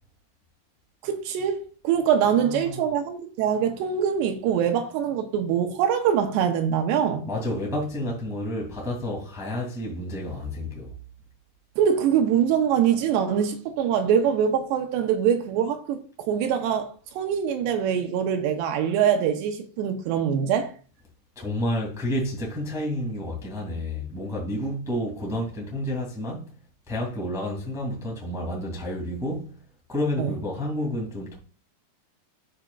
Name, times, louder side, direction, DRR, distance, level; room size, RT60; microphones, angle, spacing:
voice 1, 1.0-7.3 11.8-20.7 30.2-30.3, right 8 dB, 80° right, 2.9 m, -24 dB
voice 2, 2.3-2.8 7.3-10.9 21.3-26.5 26.9-29.5 29.9-31.4, left 1 dB, ahead, 0.8 m, -30 dB
12.5 x 5.0 x 2.3 m
omnidirectional pair, 5.0 m